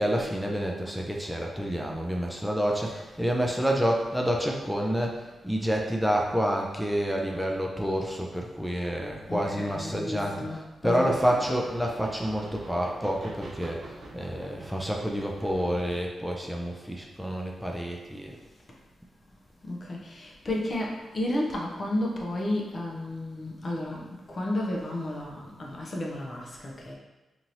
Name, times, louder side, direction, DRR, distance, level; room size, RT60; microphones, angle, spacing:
voice 1, 0.0-18.4, equal, ahead, -1 dB, 0.4 m, -28 dB
voice 2, 9.3-11.4 19.6-26.9, left 1 dB, 50° left, -2 dB, 0.7 m, -32 dB
sound 1, 10.9-16.0, right 2 dB, 65° right, 0.4 m, -45 dB
2.9 x 2.6 x 2.7 m, 1.1 s
supercardioid pair, 45°, 0 cm